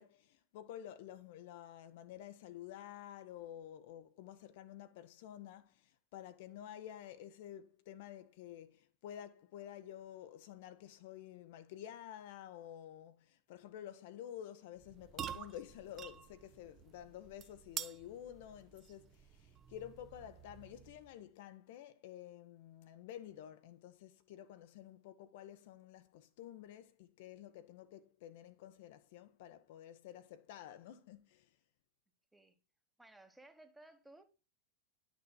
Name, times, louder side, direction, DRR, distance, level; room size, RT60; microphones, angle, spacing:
voice 1, 0.0-31.5, left 11 dB, 50° left, 0.5 m, -51 dB
sound 1, 14.8-21.2, right 9 dB, 30° right, 0.5 m, -49 dB
voice 2, 33.0-34.2, right 2 dB, 5° right, 1.0 m, -59 dB
10.5 x 6.1 x 2.2 m
figure-of-eight pair, 90°, 0 cm